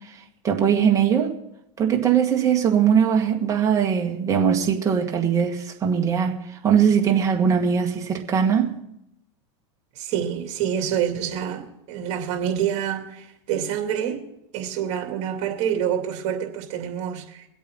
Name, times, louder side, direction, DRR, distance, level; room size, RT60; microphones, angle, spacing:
voice 1, 0.4-1.3 1.8-8.8, right 7 dB, 20° right, 1.9 m, -20 dB
voice 2, 9.9-14.3 14.5-17.5, right 9 dB, 45° right, 2.7 m, -27 dB
23.5 x 8.3 x 4.0 m
supercardioid pair, 130°, 16 cm